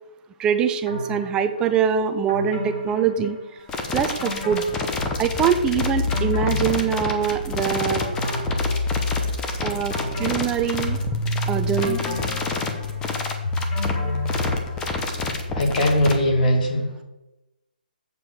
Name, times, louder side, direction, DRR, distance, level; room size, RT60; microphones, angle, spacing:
voice 1, 0.4-3.4 3.9-4.7 5.2-8.0 9.6-11.0 11.5-12.0, right 8 dB, 15° right, 10 dB, 0.5 m, -23 dB
sound 1, 0.9-1.7 2.3-3.7 4.2-5.5 5.9-7.5 8.0-9.3 9.9-11.4 11.8-15.1 15.4-15.5, left 1 dB, 35° left, 2.6 m, -34 dB
sound 2, 3.7-16.1, left 3 dB, 15° left, 1.0 m, -29 dB
sound 3, 5.0-16.4, left 2 dB, 85° left, 2.7 m, -29 dB
voice 2, 15.5-17.0, left 1 dB, 60° left, 0 dB, 2.7 m, -20 dB
7.7 x 6.9 x 4.8 m, 0.99 s
figure-of-eight pair, 140°, 5 cm